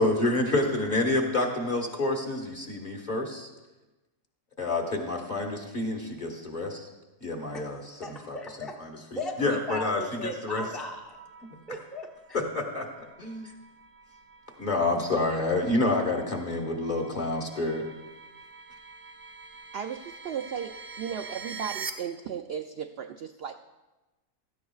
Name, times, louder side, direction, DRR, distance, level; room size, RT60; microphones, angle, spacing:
voice 1, 0.0-3.5 4.6-6.9 7.2-8.4 8.8-10.6 12.3-13.5 14.6-17.9, left 2 dB, 35° left, 1 dB, 1.5 m, -28 dB
voice 2, 8.0-8.8 9.1-12.4, left 1 dB, ahead, 0 dB, 0.7 m, -38 dB
sound 1, 11.0-21.9, right 4 dB, 80° right, 1.4 m, -45 dB
voice 3, 19.7-23.6, right 8 dB, 65° right, 7 dB, 0.6 m, -36 dB
16.5 x 13.5 x 2.3 m, 1.1 s
omnidirectional pair, 1.5 m